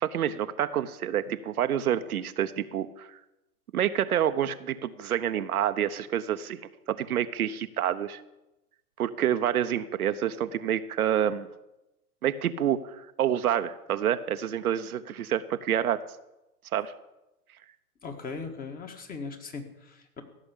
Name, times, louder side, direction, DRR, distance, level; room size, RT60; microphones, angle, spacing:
voice 1, 0.0-3.2 3.7-6.6 6.9-8.2 9.0-11.5 12.2-16.0 16.7-16.9, right 10 dB, 70° right, 10 dB, 0.9 m, -28 dB
voice 2, 18.0-20.2, left 4 dB, 20° left, 6 dB, 1.7 m, -39 dB
15.5 x 6.9 x 8.4 m, 0.96 s
hypercardioid pair, 110°, 45 cm